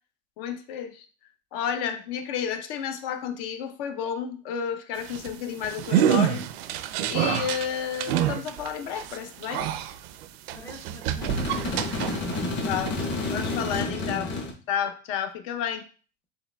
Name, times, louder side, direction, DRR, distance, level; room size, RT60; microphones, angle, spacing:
voice 1, 0.4-1.1 1.5-6.4 7.1-9.7 12.7-14.4 14.7-15.8, left 8 dB, 65° left, 8 dB, 0.7 m, -31 dB
sound 1, 5.0-12.5 12.9-13.8, right 10 dB, 75° right, 0.5 m, -28 dB
voice 2, 10.5-12.9 13.9-14.4, equal, 10° left, 4 dB, 0.5 m, -39 dB
sound 2, 11.2-14.5, left 3 dB, 35° left, 1.0 m, -30 dB
4.6 x 3.2 x 2.2 m, 0.38 s
supercardioid pair, 115°, 31 cm